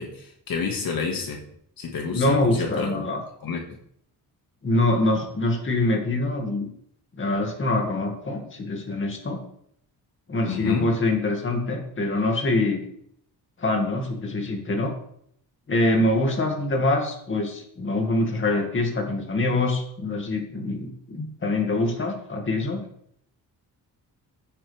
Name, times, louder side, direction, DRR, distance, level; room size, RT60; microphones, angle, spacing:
voice 1, 0.0-1.4 1.8-3.0 3.4-3.6 10.5-10.9, left 5 dB, 65° left, 2 dB, 2.0 m, -29 dB
voice 2, 2.1-3.2 4.6-6.7 7.1-9.4 10.3-12.8 13.6-14.9 15.7-22.9, left 2 dB, 30° left, 1 dB, 2.2 m, -24 dB
15.5 x 8.7 x 3.5 m, 0.68 s
wide cardioid pair, 165°, 37 cm